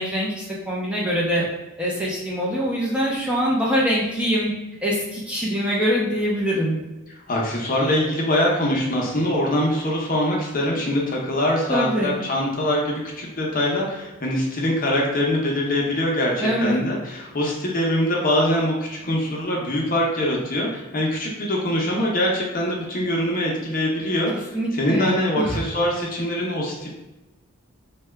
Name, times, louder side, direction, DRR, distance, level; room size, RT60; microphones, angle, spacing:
voice 1, 0.0-1.4 1.8-4.5 4.8-6.8 11.7-12.2 16.4-16.8 24.5-25.6, equal, 5° right, -6 dB, 0.4 m, -23 dB
voice 2, 7.1-26.9, left 1 dB, 40° left, -2 dB, 0.6 m, -23 dB
2.7 x 2.2 x 3.3 m, 1.1 s
head